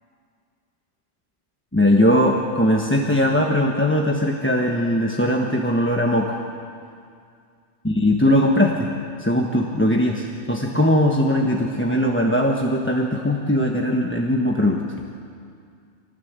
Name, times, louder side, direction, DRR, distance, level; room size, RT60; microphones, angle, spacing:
voice 1, 1.7-6.4 7.8-8.9 9.2-14.8, left 1 dB, 10° left, 0 dB, 1.2 m, -20 dB
24.5 x 19.0 x 8.2 m, 2.3 s
omnidirectional pair, 1.2 m